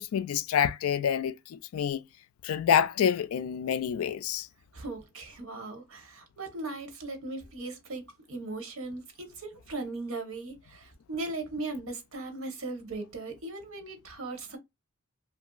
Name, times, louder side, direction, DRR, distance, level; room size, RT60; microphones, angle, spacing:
voice 1, 0.0-2.1 2.4-4.5, left 8 dB, 90° left, 0.3 m, -27 dB
voice 2, 4.7-14.6, right 2 dB, 85° right, 1.0 m, -38 dB
2.9 x 2.6 x 2.3 m
head